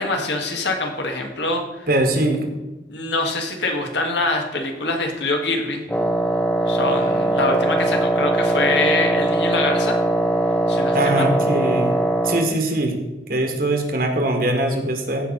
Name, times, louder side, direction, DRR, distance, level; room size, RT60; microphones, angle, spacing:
voice 1, 0.0-1.9 2.9-5.8 6.7-10.0 10.7-11.0, left 2 dB, 70° left, 2 dB, 1.8 m, -24 dB
voice 2, 1.9-2.6 10.9-11.9 12.2-12.9 13.3-15.3, right 1 dB, 50° right, 3 dB, 1.6 m, -21 dB
Wind instrument woodwind instrument, 5.9-12.5, right 1 dB, 5° left, 0.7 m, -21 dB
15.5 x 5.4 x 4.0 m, 1.1 s
head